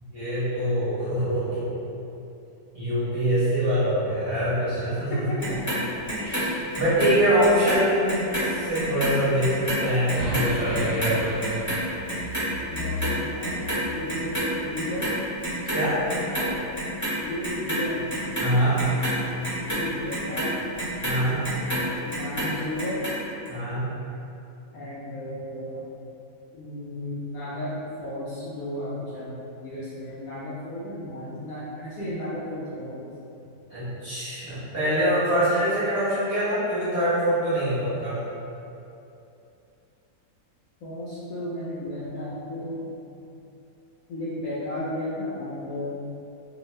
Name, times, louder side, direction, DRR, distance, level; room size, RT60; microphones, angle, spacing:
voice 1, 0.1-1.7 2.7-5.3 6.2-11.3 15.7-16.1 18.4-18.9 21.0-21.4 23.5-23.9 33.7-38.2, equal, 40° right, -14 dB, 1.1 m, -24 dB
Clock, 5.4-7.8 8.1-14.5 14.7-15.8 16.1-17.1 17.4-21.8 22.1-23.1 23.5-23.6, right 1 dB, 20° left, 0.4 m, -29 dB
sound 1, 10.1-14.4, left 1 dB, 75° right, 1.3 m, -33 dB
voice 2, 12.7-15.1 16.4-16.6 17.2-18.1 19.6-20.6 22.0-23.1 24.7-25.9 26.5-33.1 40.8-42.9 44.1-45.9, left 1 dB, 70° left, -8 dB, 0.9 m, -34 dB
2.7 x 2.5 x 3.1 m, 2.8 s
omnidirectional pair, 1.8 m